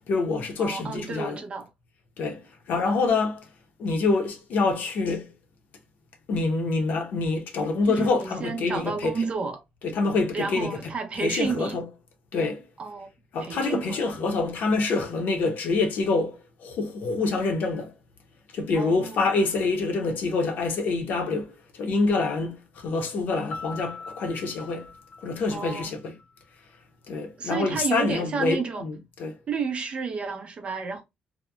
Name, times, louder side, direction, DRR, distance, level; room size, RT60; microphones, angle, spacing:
voice 1, 0.1-1.4 2.2-3.5 3.8-5.3 6.3-9.3 9.8-10.9 11.2-11.8 12.3-12.6 13.3-17.9 18.5-24.9 25.2-26.1 27.1-29.4, left 3 dB, 70° left, 0.8 m, -26 dB
voice 2, 0.6-1.7 2.8-3.0 7.9-9.6 10.3-11.8 12.8-13.1 13.4-14.0 18.7-19.3 25.5-26.0 27.4-28.9 29.5-31.0, right 5 dB, 40° right, 0.6 m, -31 dB
Piano, 23.5-26.3, left 4 dB, 40° left, 0.4 m, -41 dB
2.8 x 2.1 x 2.3 m
cardioid pair, 125°, 3 cm